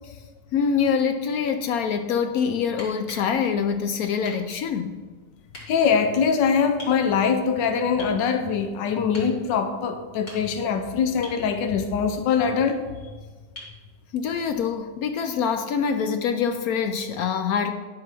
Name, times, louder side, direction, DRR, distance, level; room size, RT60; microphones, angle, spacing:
voice 1, 0.5-5.0 14.1-17.7, left 6 dB, 70° left, 8 dB, 0.9 m, -25 dB
sound 1, 2.8-3.3 4.2-4.5 5.5-5.7 6.8-7.0 8.0-8.2 9.1-9.3 10.1-10.7 11.2-11.4 13.6-13.8 15.6-15.7, left 1 dB, 35° left, 2.7 m, -41 dB
voice 2, 5.7-12.8, left 6 dB, 85° left, 7 dB, 1.4 m, -23 dB
10.5 x 4.7 x 6.0 m, 1.4 s
omnidirectional pair, 1.9 m